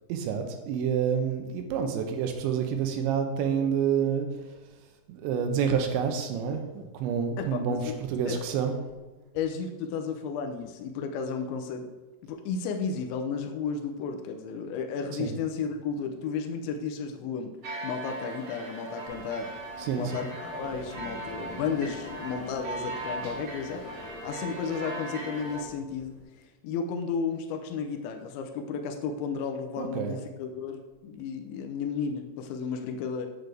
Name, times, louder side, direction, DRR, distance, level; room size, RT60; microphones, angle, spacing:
voice 1, 0.1-4.3 5.1-7.8 8.1-8.7 15.2-15.3 19.8-20.1 29.8-30.2, right 7 dB, 85° right, 5 dB, 3.2 m, -28 dB
voice 2, 7.4-8.0 8.3-8.4 9.3-11.9 12.2-17.6 17.8-19.5 19.9-24.0 24.2-26.2 26.6-33.3, left 5 dB, 85° left, 4 dB, 3.1 m, -33 dB
sound 1, 17.6-25.6, right 1 dB, 60° right, 2.8 m, -39 dB
sound 2, 19.1-26.2, left 1 dB, 20° right, 2.5 m, -47 dB
8.8 x 7.8 x 3.4 m, 1.2 s
omnidirectional pair, 5.2 m